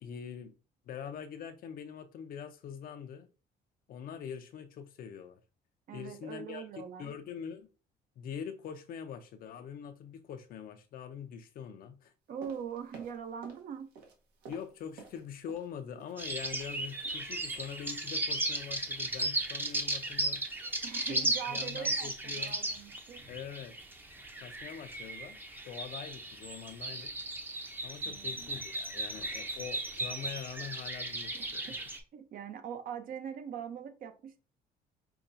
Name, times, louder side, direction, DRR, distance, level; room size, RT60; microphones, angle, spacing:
voice 1, 0.0-0.5 0.9-3.3 3.9-5.4 5.9-7.7 8.2-12.1 14.5-20.5 21.1-22.6 23.3-23.8 24.4-25.4 25.6-27.1 27.8-31.8, left 8 dB, 60° left, 0.6 m, -44 dB
voice 2, 5.9-7.1 12.3-13.9 20.8-23.3 28.0-28.5 31.3-31.5 32.1-34.4, right 8 dB, 55° right, 0.7 m, -42 dB
sound 1, 12.4-13.7 13.9-15.7 16.0-16.8 17.0-17.3 17.6-17.8 18.1-18.3 18.6-18.7, right 5 dB, 80° right, 1.1 m, -52 dB
sound 2, 16.2-32.0, right 1 dB, 10° right, 0.6 m, -36 dB
5.6 x 2.3 x 2.6 m
cardioid pair, 110°, 17 cm